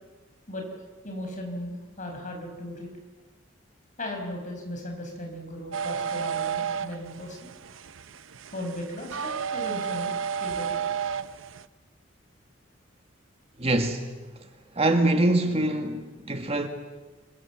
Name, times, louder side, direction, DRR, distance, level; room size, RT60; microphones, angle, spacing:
voice 1, 1.0-2.9 4.0-7.5 8.5-10.1 10.4-10.8, left 1 dB, 40° left, 5.7 m, -37 dB
sound 1, 5.7-11.6, right 7 dB, 90° right, 0.7 m, -32 dB
voice 2, 13.6-14.1 14.8-16.7, right 2 dB, 30° right, 1.8 m, -24 dB
27.5 x 23.5 x 7.3 m
head